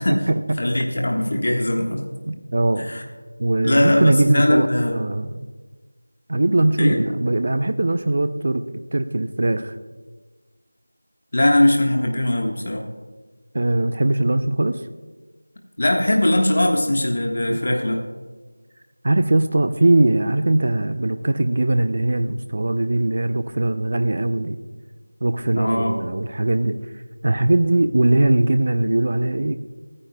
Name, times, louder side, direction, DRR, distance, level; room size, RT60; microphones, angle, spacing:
voice 1, 0.0-0.6 1.3-1.4 2.3-2.9 3.4-5.5 6.3-8.6 8.9-9.7 13.5-14.8 17.4-17.6 19.0-24.6 25.2-26.8 27.2-29.5, right 2 dB, 45° right, 10 dB, 0.6 m, -20 dB
voice 2, 0.6-2.1 2.8-3.0 3.6-5.0 6.8-7.0 11.3-12.8 15.8-18.0 25.5-26.0, left 1 dB, 45° left, 1 dB, 1.4 m, -20 dB
28.0 x 9.9 x 2.3 m, 1.3 s
figure-of-eight pair, 175°, 0 cm